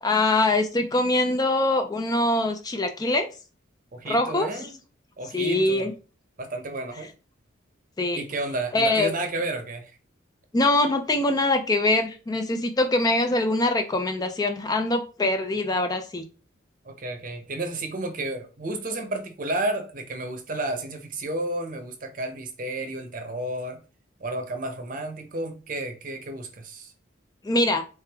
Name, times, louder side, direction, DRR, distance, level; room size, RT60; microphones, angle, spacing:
voice 1, 0.0-3.3 4.1-4.5 5.3-5.9 8.0-8.2 8.7-9.1 10.5-16.3 27.4-27.8, left 2 dB, 20° left, 0.3 m, -23 dB
voice 2, 3.9-4.8 5.2-5.9 6.4-7.1 8.1-10.0 16.8-23.8 24.2-26.9, right 2 dB, 45° right, 0.7 m, -32 dB
3.4 x 3.3 x 3.4 m
head